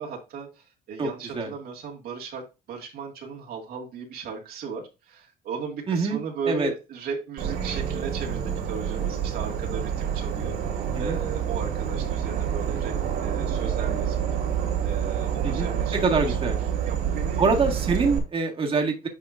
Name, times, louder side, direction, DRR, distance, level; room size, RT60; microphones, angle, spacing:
voice 1, 0.0-12.9 13.2-14.2 14.8-16.3 16.8-17.5, right 5 dB, 65° right, 2.0 m, -36 dB
voice 2, 1.0-1.5 5.9-6.2 6.5-6.7 11.0-11.2 15.4-16.6 17.4-19.1, right 4 dB, 35° right, 1.8 m, -25 dB
Insect / Frog, 7.4-18.2, right 8 dB, 90° right, 3.1 m, -28 dB
9.0 x 5.1 x 2.5 m
cardioid pair, 110°, 17 cm